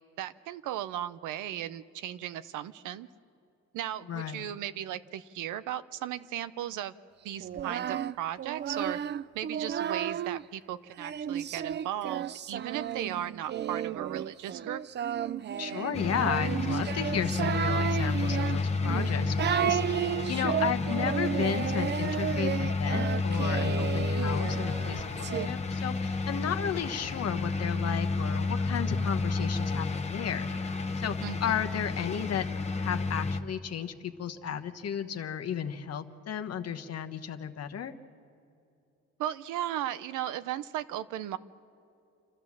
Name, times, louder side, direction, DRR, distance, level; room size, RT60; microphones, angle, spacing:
voice 1, 0.2-3.1 3.7-6.9 7.2-9.0 9.3-14.8 19.2-19.7 24.2-24.4 31.2-31.6 39.2-41.4, right 12 dB, 90° right, 14 dB, 0.7 m, -36 dB
voice 2, 4.1-4.5 15.6-19.8 20.3-30.5 31.0-31.1 31.4-32.5 32.8-37.9, left 8 dB, 55° left, 7 dB, 1.2 m, -34 dB
Singing, 7.4-10.4 11.0-25.5, right 9 dB, 35° right, 0.4 m, -33 dB
sound 1, 15.9-33.4, left 3 dB, 20° left, 1.1 m, -31 dB
28.5 x 12.5 x 7.3 m, 2.6 s
cardioid pair, 90°, 30 cm